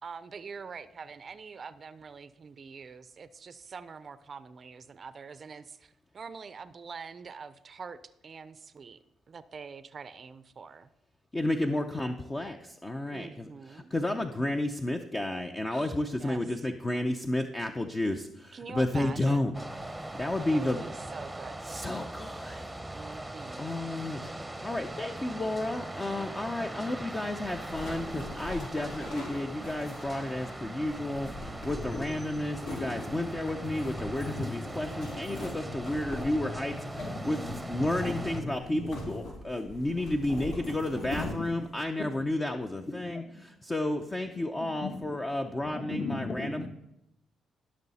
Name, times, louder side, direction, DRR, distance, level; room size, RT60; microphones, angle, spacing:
voice 1, 0.0-9.0 9.3-10.9 13.1-14.5 15.7-16.4 18.5-19.6 20.4-21.6 22.9-23.7, right 5 dB, 45° right, 14 dB, 0.5 m, -45 dB
voice 2, 11.3-19.5 20.1-20.8 21.7-22.7 23.6-24.3 24.6-36.8 37.2-37.4 37.7-46.7, left 1 dB, 20° left, 5 dB, 0.7 m, -32 dB
sound 1, 19.5-38.4, right 1 dB, 5° right, 0.8 m, -40 dB
sound 2, 23.5-31.4, equal, 70° left, 4.6 m, -59 dB
sound 3, 27.4-41.8, left 2 dB, 90° left, 4.0 m, -42 dB
voice 3, 34.2-34.8 35.0-39.1 39.9-40.0 40.9-41.0 42.0-42.1 42.7-43.4 44.6-45.0 45.7-46.7, left 2 dB, 40° left, 5 dB, 1.3 m, -39 dB
14.5 x 6.3 x 4.2 m, 0.86 s
cardioid pair, 90°, 0 cm